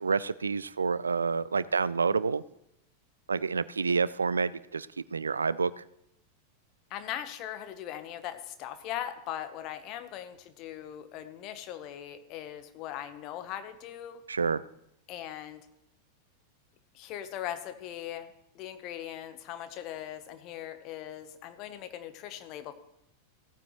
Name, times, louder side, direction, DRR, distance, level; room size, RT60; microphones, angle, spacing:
voice 1, 0.0-2.4 3.3-5.8 14.3-14.6, right 5 dB, 75° right, 18 dB, 0.3 m, -28 dB
voice 2, 6.9-14.2 15.1-15.6 16.9-18.3 18.5-22.7, left 11 dB, 40° left, 10 dB, 1.1 m, -40 dB
16.5 x 9.2 x 3.1 m, 0.78 s
figure-of-eight pair, 90°, 0 cm